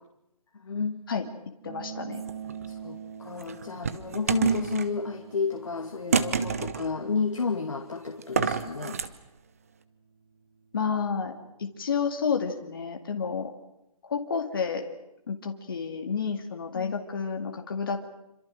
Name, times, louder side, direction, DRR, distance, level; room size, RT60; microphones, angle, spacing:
voice 1, 0.6-1.0 2.7-9.0 16.7-16.9, left 5 dB, 50° left, 3 dB, 2.4 m, -31 dB
voice 2, 1.6-2.2 10.7-11.3 11.6-13.5 14.0-14.8 15.3-18.0, left 6 dB, 35° left, 4 dB, 2.3 m, -30 dB
sound 1, 1.6-11.7, right 7 dB, 55° right, 2.5 m, -46 dB
sound 2, 2.1-2.7 3.4-4.9 6.1-6.9 8.2-9.1, right 6 dB, 25° right, 0.9 m, -27 dB
27.0 x 26.0 x 6.4 m, 0.85 s
hypercardioid pair, 170°, 20 cm